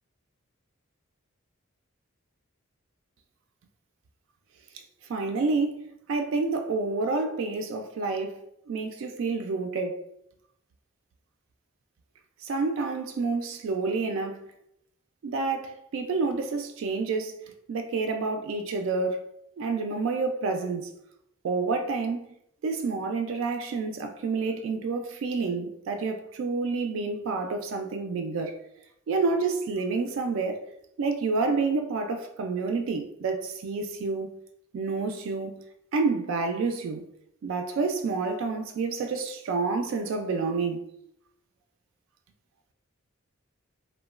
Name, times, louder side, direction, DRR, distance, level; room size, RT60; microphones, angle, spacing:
voice 1, 5.1-10.0 12.4-14.5 15.2-19.2 19.6-20.9 21.4-22.3 22.6-28.6 29.1-30.6 31.0-34.4 34.7-35.6 35.9-37.0 37.4-40.8, right 4 dB, 70° right, 0.3 m, -29 dB
2.9 x 2.2 x 2.3 m
head